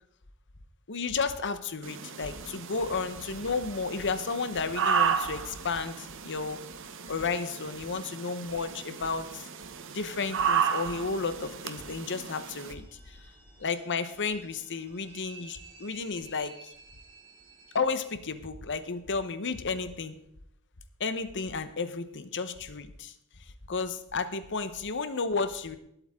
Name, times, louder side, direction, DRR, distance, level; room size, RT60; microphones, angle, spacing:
voice 1, 0.9-6.6 7.1-9.4 9.9-13.2 13.6-16.6 17.7-20.2 21.0-23.1 23.7-25.8, left 4 dB, 55° left, 11 dB, 1.0 m, -32 dB
sound 1, 1.8-12.7, right 7 dB, 60° right, 1.0 m, -33 dB
sound 2, 10.4-17.8, right 3 dB, 25° right, 3.5 m, -54 dB
19.0 x 8.3 x 3.7 m, 0.75 s
head